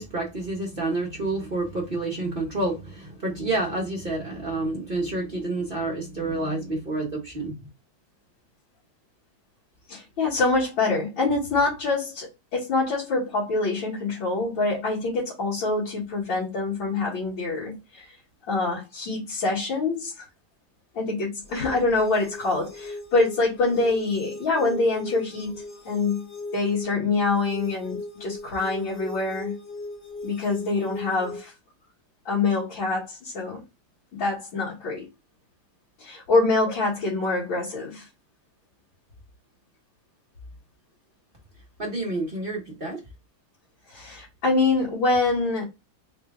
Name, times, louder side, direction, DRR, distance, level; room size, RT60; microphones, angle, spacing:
voice 1, 0.0-7.5 41.8-43.0, right 2 dB, 50° right, 0.6 m, -29 dB
voice 2, 9.9-18.2 18.5-20.2 20.9-26.2 26.5-29.5 30.2-31.5 32.3-33.6 34.1-35.1 36.0-38.1 43.9-45.6, left 3 dB, 70° left, 2.3 m, -25 dB
sound 1, 21.4-31.4, left 2 dB, 50° left, 0.7 m, -39 dB
4.4 x 2.3 x 3.4 m
omnidirectional pair, 2.3 m